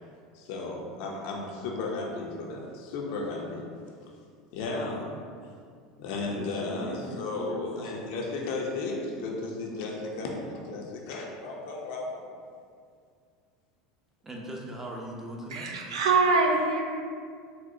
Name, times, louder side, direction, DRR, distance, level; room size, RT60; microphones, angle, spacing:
voice 1, 0.3-3.7 4.5-5.2 6.0-12.2, left 3 dB, 65° left, -1 dB, 0.5 m, -34 dB
voice 2, 6.2-8.1 14.2-15.7, right 1 dB, 15° right, -1 dB, 0.6 m, -40 dB
voice 3, 15.5-17.0, right 3 dB, 80° right, 1 dB, 0.4 m, -24 dB
4.2 x 2.1 x 2.6 m, 2.2 s
hypercardioid pair, 90°, 3 cm